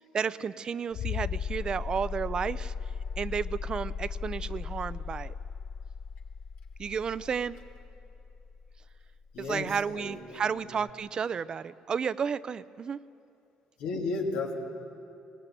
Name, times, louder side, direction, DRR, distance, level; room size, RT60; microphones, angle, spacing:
voice 1, 0.1-2.7 3.2-5.3 6.8-7.6 9.4-13.0, right 6 dB, 35° right, 16 dB, 0.5 m, -32 dB
sound 1, 0.9-9.4 10.9-11.0, left 6 dB, 50° left, 0.6 m, -36 dB
voice 2, 9.3-10.6 13.8-14.6, left 3 dB, 85° left, 0 dB, 3.0 m, -34 dB
21.0 x 18.5 x 9.2 m, 2.8 s
cardioid pair, 120°, 2 cm